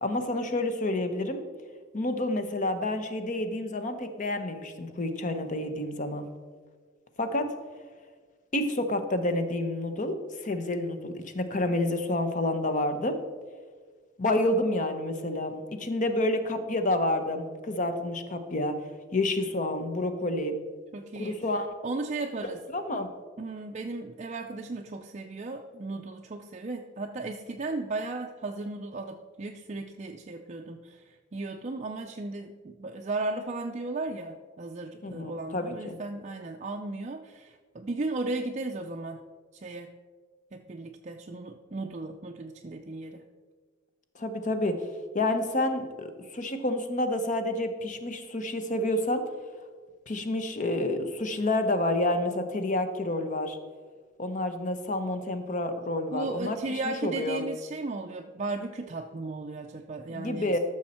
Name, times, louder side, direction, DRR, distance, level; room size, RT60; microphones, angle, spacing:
voice 1, 0.0-1.4 1.9-6.3 7.2-7.5 8.5-13.2 14.2-18.8 19.1-20.6 21.2-21.7 22.7-23.1 35.0-36.0 44.1-44.8 45.1-46.1 46.3-49.3 50.1-53.6 54.2-57.4 60.1-60.6, left 1 dB, 40° left, 8 dB, 0.9 m, -29 dB
voice 2, 20.9-21.4 21.8-22.6 23.4-39.2 39.5-39.9 40.5-43.2 56.1-60.6, right 2 dB, 35° right, 4 dB, 0.4 m, -35 dB
13.0 x 6.3 x 4.3 m, 1.5 s
head